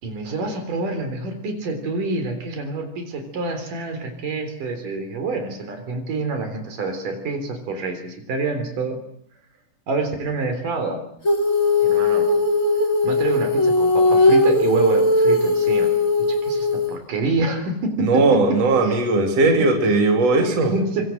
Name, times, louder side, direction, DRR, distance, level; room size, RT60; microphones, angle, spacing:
voice 1, 0.0-9.0 9.9-11.0 11.8-12.3 13.0-15.9 16.2-19.0 19.6-20.0 20.5-21.1, right 3 dB, 75° right, 7 dB, 5.3 m, -27 dB
Female singing, 11.3-17.0, left 2 dB, 25° left, 3.4 m, -18 dB
voice 2, 18.0-20.7, right 3 dB, 50° right, 3 dB, 4.0 m, -18 dB
25.0 x 24.5 x 7.8 m, 0.68 s
omnidirectional pair, 3.8 m